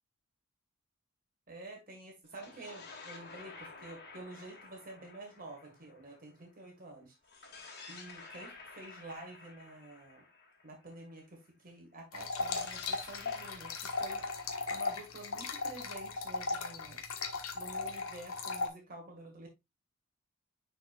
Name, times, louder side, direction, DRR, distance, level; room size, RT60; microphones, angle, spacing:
voice 1, 1.5-7.1 7.9-10.3 10.6-13.7 14.0-14.2 14.7-17.0 17.5-19.5, right 2 dB, 40° right, 1.7 m, -49 dB
sound 1, 2.3-6.7 7.2-11.2 12.2-16.0, left 4 dB, 50° left, 2.3 m, -52 dB
sound 2, 12.1-18.7, left 4 dB, 80° left, 1.4 m, -37 dB
9.8 x 4.8 x 2.4 m
head